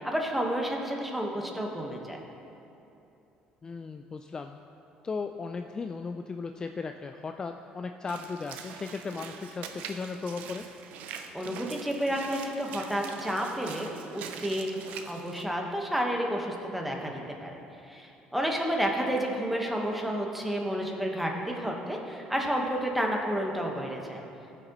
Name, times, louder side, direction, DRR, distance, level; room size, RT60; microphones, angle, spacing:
voice 1, 0.0-2.2 11.3-14.7 14.9-17.6 17.8-24.2, equal, 5° right, 0 dB, 1.2 m, -31 dB
voice 2, 3.6-4.6 5.0-10.6, left 4 dB, 30° left, 6 dB, 0.3 m, -36 dB
Walk footsteps / Splash splatter, 8.1-15.4, right 7 dB, 75° right, 0.6 m, -43 dB
15.0 x 6.6 x 3.0 m, 2.8 s
cardioid pair, 100°, 3 cm